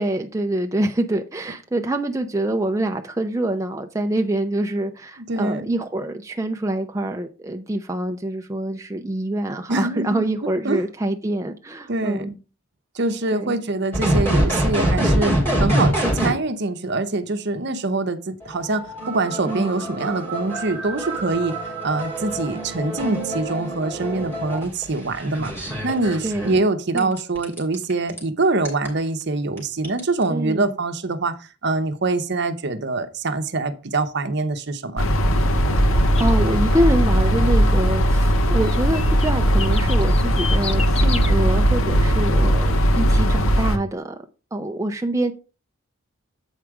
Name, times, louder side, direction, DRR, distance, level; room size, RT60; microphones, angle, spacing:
voice 1, 0.0-12.3 13.3-13.5 19.5-19.7 26.2-26.5 26.9-27.1 30.3-30.7 35.8-44.2 44.5-45.3, right 1 dB, 15° right, 0.5 m, -25 dB
voice 2, 5.3-5.8 9.7-10.2 10.6-10.8 11.9-12.4 12.9-21.5 21.8-31.4 31.6-35.1, right 3 dB, 55° right, 0.8 m, -24 dB
sound 1, 13.9-16.3 18.4-26.6 27.0-28.2 28.6-28.9 29.6-29.7 29.8-30.2, right 1 dB, 10° left, 3.0 m, -24 dB
sound 2, 35.0-43.8, equal, 75° left, 1.0 m, -18 dB
sound 3, 36.1-36.4 38.6-41.3, left 6 dB, 30° left, 0.7 m, -31 dB
8.1 x 4.9 x 4.7 m
head